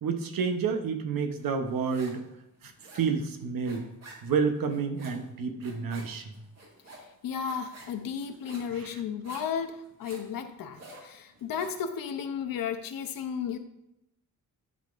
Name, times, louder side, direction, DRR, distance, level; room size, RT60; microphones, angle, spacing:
voice 1, 0.0-2.2 2.6-3.8 4.2-6.2 8.8-8.9, right 5 dB, 80° right, 5 dB, 0.8 m, -29 dB
sound 1, 1.4-2.3 2.5-11.9, right 2 dB, 50° right, 1.9 m, -50 dB
voice 2, 7.2-13.6, left 7 dB, 80° left, 8 dB, 0.7 m, -34 dB
10.5 x 3.8 x 2.5 m, 0.84 s
wide cardioid pair, 120°, 34 cm